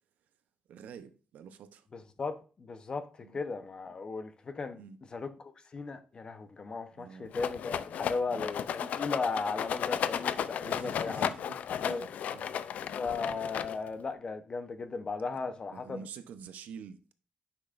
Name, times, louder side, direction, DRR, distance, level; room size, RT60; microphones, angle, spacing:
voice 1, 0.7-1.9 3.2-3.4 4.7-5.0 6.9-7.4 7.8-7.9 8.3-8.4 10.6-12.6 15.7-17.1, right 7 dB, 80° right, 0.8 m, -48 dB
voice 2, 1.9-4.8 5.1-11.3 11.8-12.1 13.0-16.1, left 4 dB, 35° left, 0.9 m, -36 dB
Rattle, 7.3-14.0, left 9 dB, 65° left, 0.4 m, -34 dB
9.8 x 6.0 x 2.6 m
cardioid pair, 120°, 3 cm